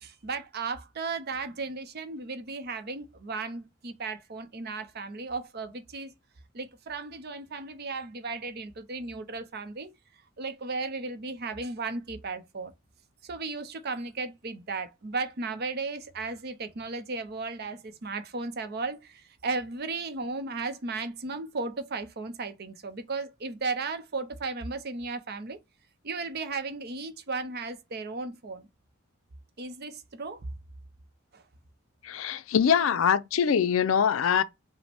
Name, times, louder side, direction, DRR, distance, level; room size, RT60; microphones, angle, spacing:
voice 1, 0.0-6.1 6.5-9.9 10.4-12.7 13.2-25.6 26.0-28.7 29.6-30.4 31.3-31.4 32.1-32.2, right 3 dB, 50° right, 0.6 m, -35 dB
voice 2, 32.0-34.4, left 7 dB, 70° left, 0.4 m, -23 dB
5.0 x 2.1 x 3.3 m
head